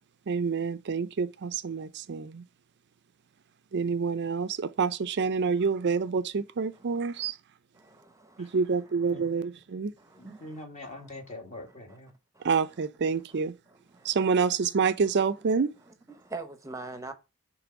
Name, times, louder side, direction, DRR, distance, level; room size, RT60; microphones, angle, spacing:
voice 1, 0.3-2.4 3.7-7.4 8.4-9.9 12.4-13.5 14.0-15.7, right 5 dB, 50° right, 0.5 m, -27 dB
voice 2, 6.9-7.3 7.7-9.3 10.0-10.5 10.8-10.9 12.3-12.5 13.3-13.4 13.7-14.2 14.6-14.8 16.1-17.1, right 3 dB, 15° right, 0.8 m, -44 dB
voice 3, 9.1-9.4 9.8-12.1, left 2 dB, 35° left, 1.8 m, -44 dB
6.9 x 3.3 x 5.1 m
head